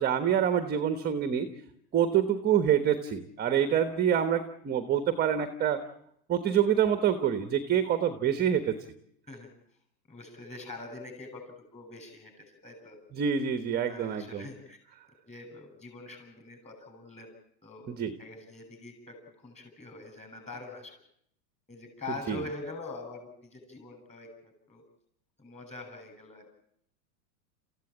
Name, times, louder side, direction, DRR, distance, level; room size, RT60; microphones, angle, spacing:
voice 1, 0.0-1.5 1.9-5.8 6.3-8.7 13.1-14.5 17.9-18.1 22.3-22.4, right 9 dB, 20° right, 9 dB, 1.3 m, -26 dB
voice 2, 10.1-13.0 13.8-14.8 15.3-17.4 17.6-17.9 18.2-21.0 21.7-24.8 25.4-26.5, left 2 dB, 15° left, 4 dB, 7.3 m, -44 dB
27.0 x 15.0 x 8.7 m, 0.73 s
hypercardioid pair, 135°, 50 cm